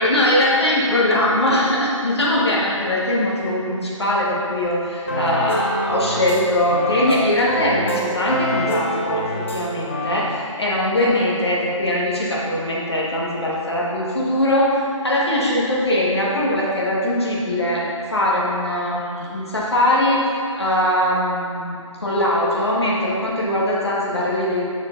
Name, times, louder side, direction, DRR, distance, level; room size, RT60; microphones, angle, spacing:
voice 1, 0.0-21.7 22.0-24.7, left 1 dB, 50° left, -6 dB, 1.6 m, -21 dB
sound 1, 5.1-6.4 6.7-9.6 9.9-10.2, equal, 20° left, 0.6 m, -25 dB
7.0 x 6.6 x 2.6 m, 2.4 s
figure-of-eight pair, 165°, 17 cm